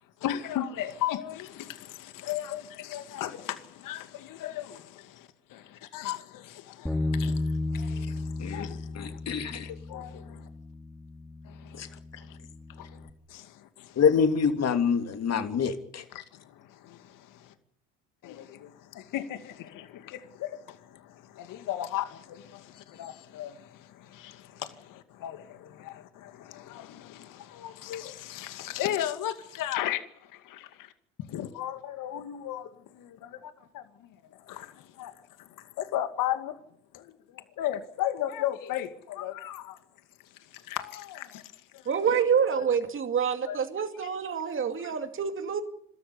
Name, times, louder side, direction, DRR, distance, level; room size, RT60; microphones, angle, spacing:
voice 1, 0.2-9.2 9.9-10.2 11.6-12.4 12.7-14.0 16.1-17.4 18.2-30.9 31.3-36.6 36.9-39.8 40.4-42.2 43.5-43.6 44.0-44.1 44.8-45.0, left 12 dB, 60° left, 2.4 m, -36 dB
Bass guitar, 6.9-13.1, left 2 dB, ahead, 2.5 m, -34 dB
voice 2, 8.4-9.7 11.7-11.9 13.9-16.0, left 6 dB, 45° left, 3.1 m, -26 dB
voice 3, 41.9-45.6, right 7 dB, 35° right, 2.4 m, -27 dB
29.0 x 13.5 x 9.7 m
hypercardioid pair, 70°, 37 cm